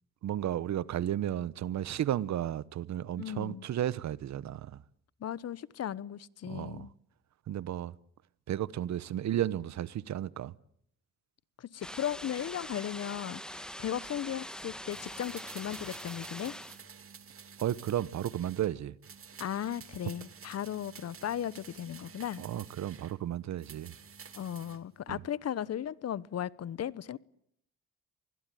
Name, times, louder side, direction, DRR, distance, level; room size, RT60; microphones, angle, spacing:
voice 1, 0.2-4.8 6.5-6.9 7.5-7.9 8.5-10.5 17.6-18.9 22.4-23.9 25.1-25.2, right 11 dB, 65° right, 1.1 m, -33 dB
voice 2, 3.2-3.7 5.2-6.9 11.6-16.5 19.4-22.4 24.4-27.2, left 10 dB, 55° left, 1.1 m, -36 dB
sound 1, 11.8-16.8, equal, 5° left, 1.5 m, -43 dB
sound 2, 14.9-18.7 19.0-23.2 23.6-24.8 25.1-25.2, right 6 dB, 45° right, 2.9 m, -51 dB
25.0 x 21.0 x 9.3 m
cardioid pair, 90°, 30 cm